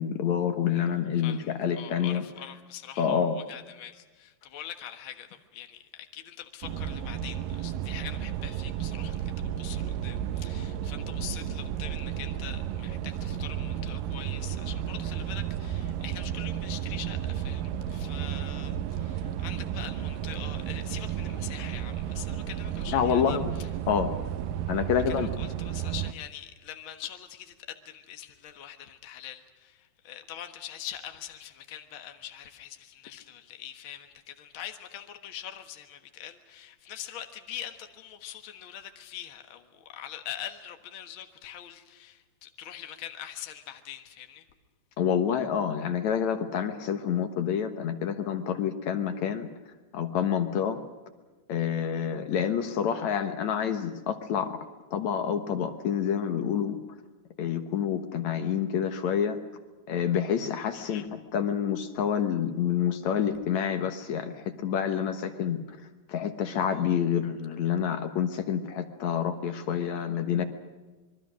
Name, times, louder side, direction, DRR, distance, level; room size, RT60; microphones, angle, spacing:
voice 1, 0.0-2.2 3.0-3.4 22.9-23.5 23.9-24.1 24.7-25.3 45.0-49.5 49.9-50.8 51.5-54.6 54.9-56.8 57.4-59.4 59.9-65.8 66.1-70.4, left 8 dB, 65° left, 1.9 m, -28 dB
voice 2, 0.7-23.7 25.1-44.4 60.9-61.0, left 10 dB, 85° left, 1.1 m, -43 dB
sound 1, 6.6-26.1, right 10 dB, 70° right, 2.2 m, -33 dB
26.5 x 22.5 x 6.3 m
omnidirectional pair, 4.7 m